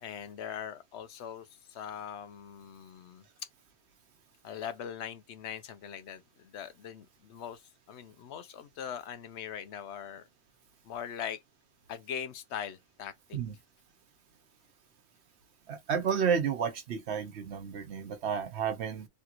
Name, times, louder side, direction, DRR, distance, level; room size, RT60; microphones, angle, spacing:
voice 1, 0.0-3.2 4.4-10.3 10.8-11.4 11.9-13.4, left 8 dB, 85° left, 0.9 m, -41 dB
voice 2, 15.7-19.1, right 7 dB, 80° right, 1.1 m, -31 dB
3.3 x 2.4 x 2.9 m
omnidirectional pair, 1.1 m